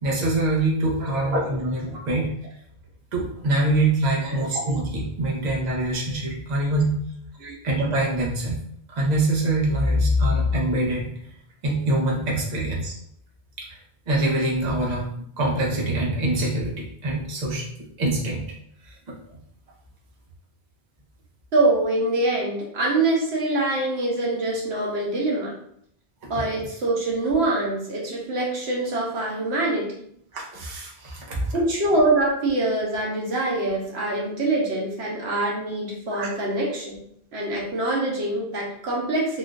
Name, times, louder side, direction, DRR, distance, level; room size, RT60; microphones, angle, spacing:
voice 1, 0.0-2.3 3.1-6.9 7.6-8.6 8.9-11.1 11.6-12.9 13.6-13.8 14.1-15.1 15.4-17.6 18.0-18.4 18.8-19.1 26.3-26.4 30.3-31.5 36.1-36.3, right 1 dB, 45° right, -3 dB, 0.8 m, -24 dB
voice 2, 21.5-25.5 26.3-29.9 31.5-37.0 37.3-39.4, right 2 dB, 90° right, -3 dB, 1.2 m, -24 dB
3.6 x 2.4 x 2.5 m, 0.68 s
omnidirectional pair, 1.1 m